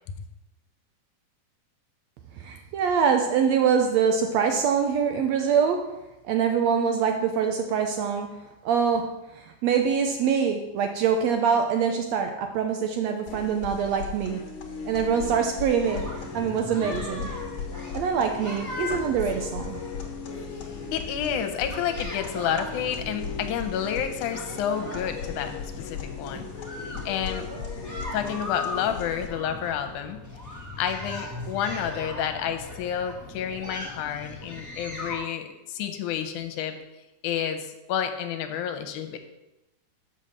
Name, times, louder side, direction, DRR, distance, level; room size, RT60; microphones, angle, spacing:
voice 1, 2.4-5.8 6.2-14.4 14.8-17.3 17.9-19.8, right 6 dB, 75° right, 5 dB, 1.6 m, -24 dB
sound 1, 13.3-29.3, left 5 dB, 55° left, 1.9 m, -37 dB
sound 2, 15.8-35.2, left 2 dB, 15° right, 0.7 m, -39 dB
voice 2, 20.9-26.4 27.1-27.5 28.1-30.2 30.8-36.8 37.2-39.2, left 9 dB, 80° left, 7 dB, 2.2 m, -30 dB
6.7 x 5.7 x 6.5 m, 0.96 s
omnidirectional pair, 3.6 m